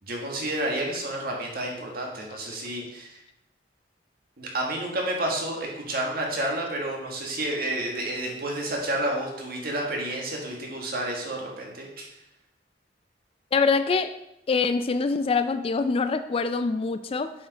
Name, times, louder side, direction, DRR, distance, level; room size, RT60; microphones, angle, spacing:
voice 1, 0.0-3.2 4.4-12.2, right 1 dB, 55° right, -1 dB, 1.8 m, -30 dB
voice 2, 13.5-14.1 14.5-17.3, left 4 dB, 30° left, 10 dB, 0.3 m, -24 dB
7.2 x 5.1 x 4.9 m, 0.87 s
head